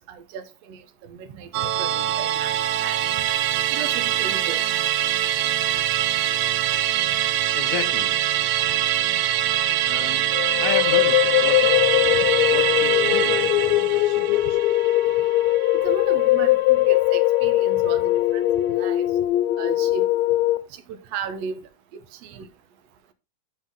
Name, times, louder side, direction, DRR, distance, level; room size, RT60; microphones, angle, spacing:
voice 1, 0.1-0.8 1.1-2.6 2.8-3.0 3.7-4.6 15.7-18.4 18.7-19.1 19.6-20.1 20.9-21.6 22.2-22.5, right 6 dB, 60° right, 2.0 m, -35 dB
Musical instrument, 1.5-16.2 16.5-16.6, right 12 dB, 90° right, 1.4 m, -24 dB
voice 2, 7.5-8.2 9.9-10.4 10.6-12.2 12.5-14.6, left 10 dB, 70° left, 2.1 m, -34 dB
sound 1, 10.3-20.6, left 16 dB, 85° left, 1.5 m, -20 dB
13.5 x 4.9 x 3.7 m
omnidirectional pair, 3.9 m